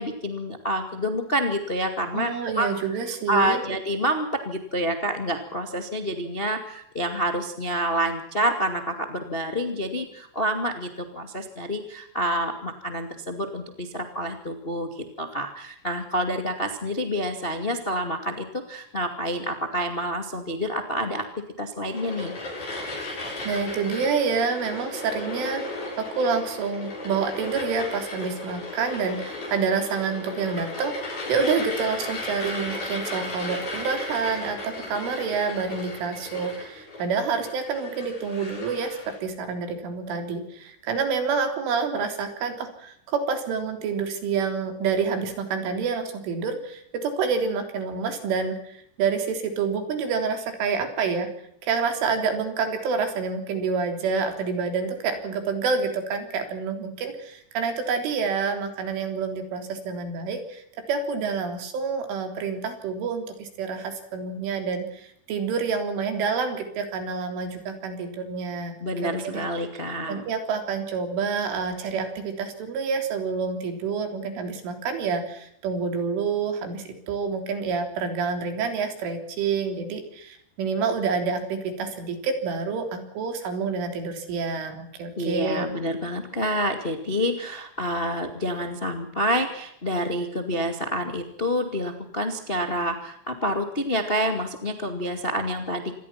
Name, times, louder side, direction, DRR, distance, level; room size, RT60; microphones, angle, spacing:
voice 1, 0.0-2.7 3.3-21.2 21.6-22.3 68.8-70.2 85.2-95.9, equal, 30° left, 6 dB, 1.0 m, -28 dB
voice 2, 2.1-3.6 23.0-23.1 23.5-51.3 51.6-68.7 69.0-69.4 70.1-85.7, right 5 dB, 85° right, 6 dB, 6.1 m, -28 dB
sound 1, 21.9-39.2, left 2 dB, 50° left, 9.3 m, -35 dB
27.0 x 21.5 x 5.9 m, 0.72 s
omnidirectional pair, 5.5 m